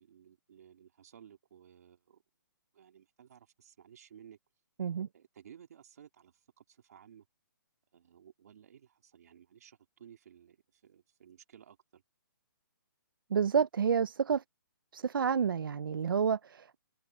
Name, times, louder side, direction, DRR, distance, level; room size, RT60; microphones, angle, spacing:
voice 1, 0.0-2.2 2.7-4.4 5.1-7.2 7.9-12.0, right 9 dB, 45° right, 3.0 m, -57 dB
voice 2, 13.3-14.4 14.9-16.8, right 7 dB, 80° right, 0.7 m, -29 dB
hypercardioid pair, 175°, 11 cm